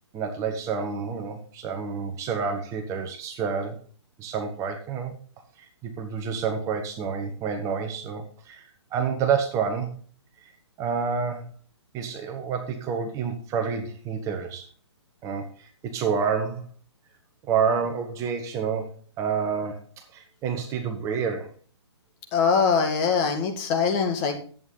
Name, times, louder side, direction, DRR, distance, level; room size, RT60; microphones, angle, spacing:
voice 1, 0.1-3.8 4.2-5.1 5.6-9.9 10.4-10.5 10.8-11.4 11.9-14.7 15.2-16.6 17.5-21.5, right 6 dB, 20° right, 5 dB, 1.3 m, -29 dB
voice 2, 22.3-24.4, left 5 dB, 30° left, 5 dB, 1.9 m, -22 dB
11.0 x 8.5 x 3.9 m, 0.42 s
hypercardioid pair, 140°, 15 cm